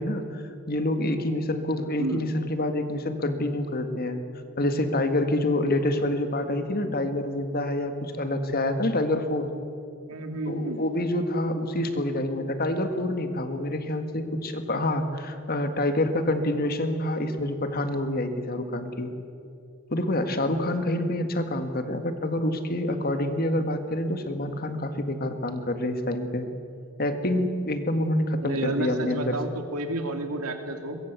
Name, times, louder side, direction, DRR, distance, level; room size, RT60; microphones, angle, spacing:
voice 1, 0.0-4.2 4.6-9.5 10.5-19.1 19.9-26.5 27.0-29.4, left 1 dB, 45° left, 8 dB, 1.9 m, -27 dB
voice 2, 10.1-10.8 28.4-31.0, right 2 dB, 90° right, 5 dB, 2.8 m, -31 dB
22.5 x 22.0 x 8.3 m, 2.6 s
head